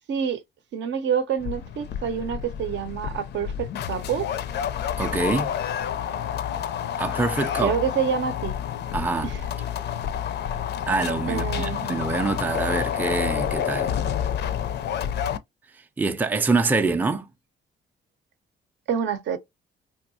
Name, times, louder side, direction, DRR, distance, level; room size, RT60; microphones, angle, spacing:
voice 1, 0.1-0.4 0.7-4.3 7.6-8.5 9.2-9.4 11.3-11.9 18.9-19.4, right 7 dB, 65° right, 0.6 m, -27 dB
sound 1, 1.4-15.4, left 9 dB, 60° left, 0.4 m, -29 dB
voice 2, 5.0-5.5 7.0-7.7 8.9-9.3 10.9-14.0 16.0-17.3, right 3 dB, 10° right, 0.4 m, -25 dB
3.4 x 2.7 x 2.6 m
cardioid pair, 90°, 20 cm